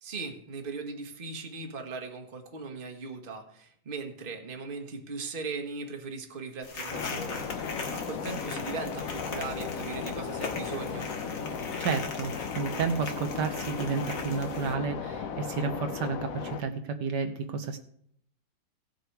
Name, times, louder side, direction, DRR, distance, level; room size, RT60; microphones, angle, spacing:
voice 1, 0.0-11.1, right 4 dB, 30° right, 5 dB, 1.4 m, -39 dB
sound 1, 6.6-14.7, left 4 dB, 80° left, 2.3 m, -40 dB
sound 2, 6.9-16.6, left 6 dB, 55° left, 1.2 m, -36 dB
voice 2, 11.8-17.8, right 5 dB, 70° right, 6 dB, 1.5 m, -31 dB
17.0 x 6.9 x 4.6 m, 0.68 s
omnidirectional pair, 2.0 m